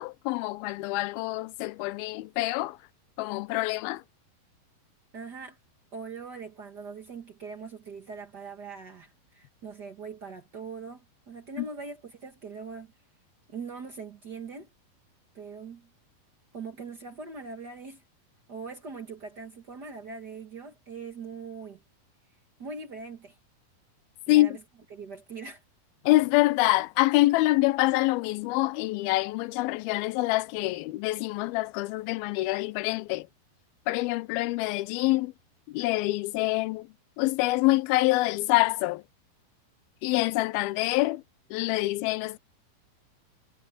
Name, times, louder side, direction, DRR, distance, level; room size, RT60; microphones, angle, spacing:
voice 1, 0.0-2.8 3.2-4.0 11.6-11.7 24.3-24.6 26.0-33.3 33.9-35.3 35.7-36.9 37.2-39.0 40.0-41.2 41.5-42.4, left 19 dB, 80° left, 2.5 m, -26 dB
voice 2, 5.1-5.6 5.9-12.9 13.5-14.7 15.3-15.9 16.5-18.0 18.5-21.8 22.6-23.4 24.3-24.6 24.9-25.6, right 4 dB, 60° right, 1.0 m, -41 dB
omnidirectional pair, 4.5 m